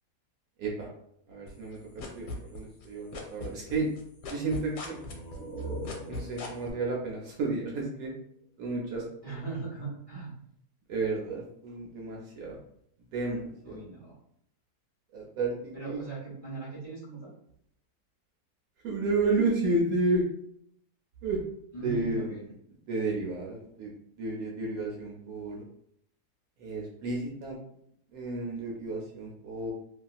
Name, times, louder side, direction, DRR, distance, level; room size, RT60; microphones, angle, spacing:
voice 1, 1.3-3.9 4.3-5.0 6.1-8.1 8.6-9.0 10.9-12.6 13.1-13.8 15.1-16.0 18.8-20.2 21.2-21.4 21.8-22.4 22.9-23.9 24.2-25.6 26.6-27.6 28.1-29.7, right 2 dB, 70° right, -2 dB, 1.0 m, -31 dB
sound 1, 1.5-2.9 3.1-6.7, left 3 dB, 85° left, 1.2 m, -38 dB
sound 2, 4.8-8.4, right 1 dB, 25° right, 1.2 m, -42 dB
voice 2, 9.2-10.3 13.6-14.2 15.7-17.3 21.7-22.4, right 4 dB, 25° left, -9 dB, 1.1 m, -39 dB
2.8 x 2.7 x 2.3 m, 0.71 s
omnidirectional pair, 1.7 m